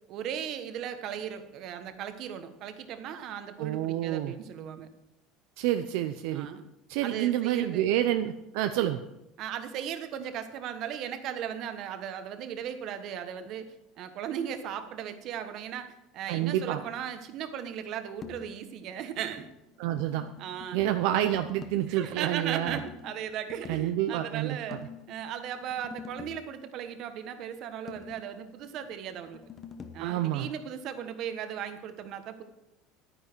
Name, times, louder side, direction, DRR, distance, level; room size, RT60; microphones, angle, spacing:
voice 1, 0.1-4.9 6.3-6.6 7.0-7.9 9.4-19.5 20.4-20.8 21.9-29.4 29.9-32.4, right 9 dB, 50° right, 9 dB, 1.2 m, -37 dB
voice 2, 3.6-4.3 5.6-6.5 6.9-9.0 16.3-16.8 19.8-20.3 20.7-22.8 23.7-24.6 30.0-30.5, right 12 dB, 75° right, 8 dB, 0.7 m, -28 dB
sound 1, 18.2-18.7 19.0-21.9 22.7-23.9 24.7-26.5 27.9-30.1, left 6 dB, 30° left, 1.0 m, -46 dB
11.0 x 10.0 x 4.6 m, 0.91 s
cardioid pair, 150°, 0 cm